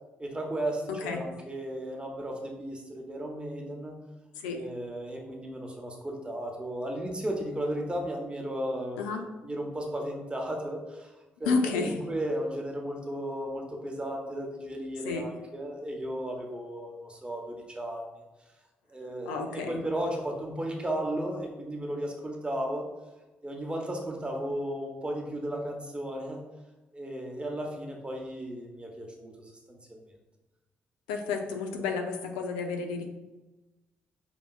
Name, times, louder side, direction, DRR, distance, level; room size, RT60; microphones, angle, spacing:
voice 1, 0.2-4.0 4.5-9.0 9.4-11.1 11.4-18.2 18.9-22.8 23.4-26.4 26.9-30.0, right 1 dB, 20° right, 0 dB, 0.9 m, -35 dB
voice 2, 0.9-1.2 4.4-4.6 9.0-9.2 11.5-11.9 15.0-15.2 19.3-19.8 31.1-33.1, left 4 dB, 75° left, 3 dB, 0.5 m, -31 dB
5.7 x 2.7 x 2.3 m, 1.1 s
figure-of-eight pair, 40°, 6 cm